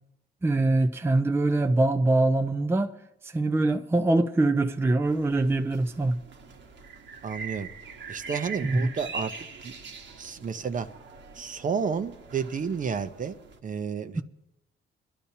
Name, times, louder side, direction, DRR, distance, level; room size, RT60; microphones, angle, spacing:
voice 1, 0.4-2.9 3.2-6.2 8.6-8.9 14.1-14.2, right 2 dB, 10° right, 0.5 m, -23 dB
sound 1, 5.0-13.6, right 4 dB, 65° right, 1.4 m, -42 dB
voice 2, 7.2-7.7 8.1-9.3 9.6-9.7 10.2-10.9 11.3-13.4 13.6-14.2, right 6 dB, 40° right, 0.8 m, -31 dB
22.5 x 12.0 x 2.8 m
cardioid pair, 90°, 20 cm